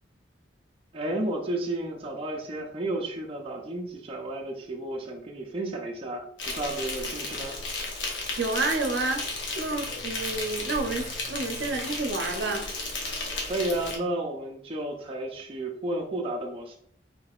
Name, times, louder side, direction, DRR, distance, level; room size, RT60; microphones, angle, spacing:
voice 1, 0.9-7.6 13.5-16.8, right 1 dB, 30° right, 0 dB, 0.5 m, -32 dB
Insect, 6.4-14.0, left 3 dB, 90° left, 0.9 m, -34 dB
voice 2, 8.4-9.2 9.5-12.6, right 3 dB, 70° right, 3 dB, 0.6 m, -29 dB
3.7 x 3.7 x 2.4 m, 0.63 s
head